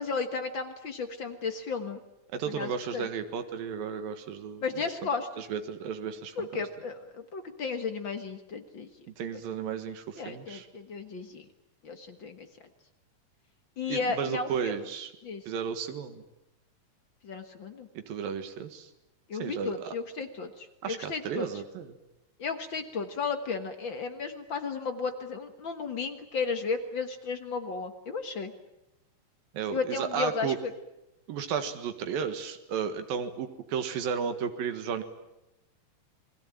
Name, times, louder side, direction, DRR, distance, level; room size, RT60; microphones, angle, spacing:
voice 1, 0.0-2.0 2.5-3.1 4.6-5.3 6.4-8.9 10.2-11.5 11.8-12.5 13.8-14.8 15.2-15.4 17.2-17.9 19.3-21.5 22.4-28.5 29.7-30.7, left 4 dB, 50° left, 7 dB, 1.5 m, -34 dB
voice 2, 2.3-4.9 5.4-6.6 9.1-10.7 13.9-15.1 15.5-16.2 18.0-18.9 19.4-19.9 20.8-21.9 29.5-30.6 31.3-35.0, right 7 dB, 90° right, 8 dB, 3.4 m, -34 dB
29.0 x 21.0 x 9.0 m, 0.92 s
omnidirectional pair, 4.0 m